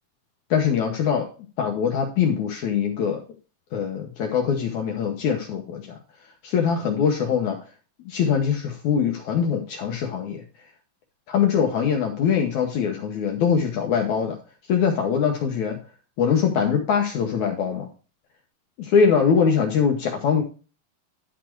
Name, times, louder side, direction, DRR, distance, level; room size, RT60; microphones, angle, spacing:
voice 1, 0.5-1.3 1.6-3.2 3.7-6.0 6.4-7.6 8.0-10.4 11.3-14.4 14.7-15.8 16.2-17.9 18.8-20.4, left 7 dB, 70° left, 3 dB, 1.9 m, -22 dB
11.5 x 4.2 x 4.5 m, 0.36 s
omnidirectional pair, 4.3 m